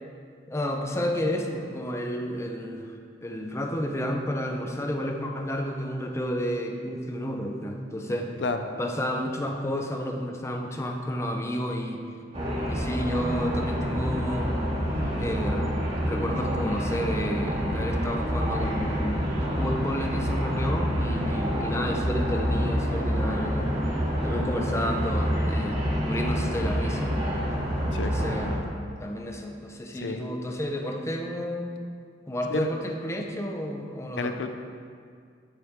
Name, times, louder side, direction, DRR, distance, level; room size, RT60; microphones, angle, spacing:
voice 1, 0.5-2.9 3.2-8.3 8.8-12.0 12.7-14.5 15.2-15.7 16.0-19.2 19.6-23.7 24.2-27.2 28.1-28.7 29.0-31.8 32.3-34.4, equal, 15° left, 2 dB, 0.7 m, -31 dB
sound 1, 12.3-28.6, equal, 35° right, 2.6 m, -27 dB
voice 2, 34.2-34.5, left 3 dB, 75° left, 7 dB, 0.6 m, -30 dB
10.0 x 8.7 x 3.6 m, 2.1 s
head